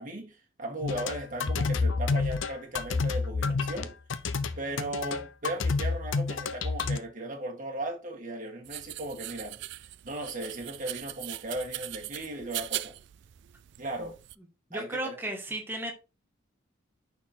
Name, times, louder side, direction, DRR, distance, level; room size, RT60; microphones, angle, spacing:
voice 1, 0.0-3.9 4.6-9.6 10.0-12.9 13.8-14.2 14.7-15.2, right 1 dB, 40° right, 1.8 m, -37 dB
sound 1, 0.8-7.0, left 4 dB, 70° left, 0.6 m, -29 dB
sound 2, 8.7-14.4, right 16 dB, 60° right, 0.3 m, -40 dB
voice 2, 14.7-15.9, right 1 dB, 10° right, 1.2 m, -34 dB
5.8 x 4.4 x 4.4 m
head